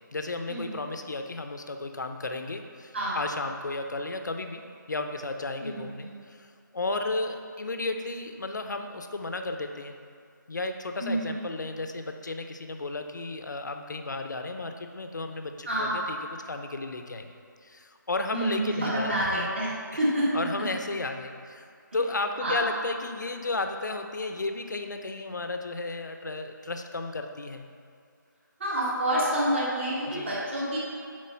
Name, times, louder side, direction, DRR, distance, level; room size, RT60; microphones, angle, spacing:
voice 1, 0.1-4.6 4.9-6.5 6.7-10.0 10.5-16.2 16.5-17.3 17.6-19.5 20.3-21.7 21.9-27.6 30.1-30.3, left 2 dB, 60° left, 6 dB, 0.7 m, -33 dB
voice 2, 5.6-6.2 11.0-11.4 15.7-16.0 18.3-19.7 20.0-20.4 22.4-22.6 28.6-30.8, right 1 dB, 35° right, -7 dB, 1.7 m, -28 dB
7.6 x 4.7 x 5.8 m, 2.3 s
hypercardioid pair, 180°, 11 cm